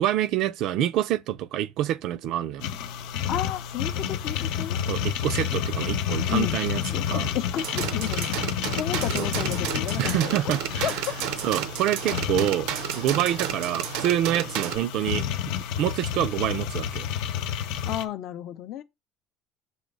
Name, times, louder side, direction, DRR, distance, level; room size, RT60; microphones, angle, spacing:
voice 1, 0.0-2.7 4.9-6.8 7.1-7.3 9.2-9.3 10.0-10.9 11.4-15.3 15.8-17.1, right 12 dB, 60° right, 0.4 m, -26 dB
sound 1, 2.6-18.0, left 9 dB, 85° left, 0.7 m, -30 dB
voice 2, 3.3-4.8 6.3-6.6 6.9-8.3 8.8-10.5 10.8-11.2 17.9-18.8, left 12 dB, 55° left, 0.4 m, -32 dB
sound 2, 7.6-14.8, right 10 dB, 90° right, 0.7 m, -32 dB
6.2 x 3.1 x 5.3 m
cardioid pair, 160°, 0 cm